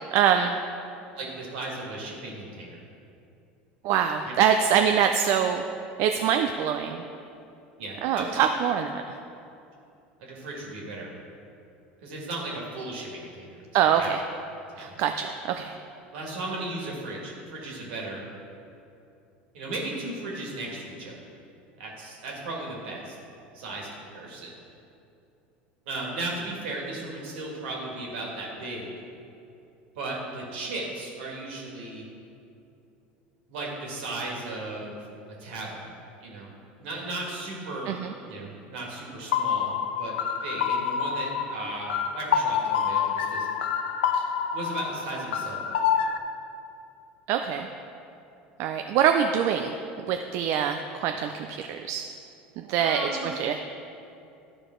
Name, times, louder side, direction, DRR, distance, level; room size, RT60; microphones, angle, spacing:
voice 1, 0.1-0.6 3.8-5.6 6.0-7.0 8.0-9.0 13.7-14.2 14.8-15.8 37.9-38.1 47.3-47.7 48.6-52.0 52.6-53.1 53.4-53.7, right 8 dB, 55° right, 5 dB, 0.4 m, -24 dB
voice 2, 1.2-2.8 7.8-8.4 10.2-11.1 12.0-13.5 13.9-14.1 14.7-14.9 16.1-18.2 19.5-21.1 21.8-23.2 23.5-23.9 24.1-24.5 25.9-28.9 30.0-32.1 33.5-35.0 35.4-35.8 36.2-36.5 36.8-37.9 38.2-40.1 40.4-43.5 44.1-44.2 44.5-45.8 52.8-53.3, right 2 dB, 75° right, -3 dB, 2.0 m, -36 dB
sound 1, 39.3-46.2, left 7 dB, 80° left, 0.4 m, -27 dB
12.0 x 4.7 x 3.8 m, 2.7 s
hypercardioid pair, 80°, 6 cm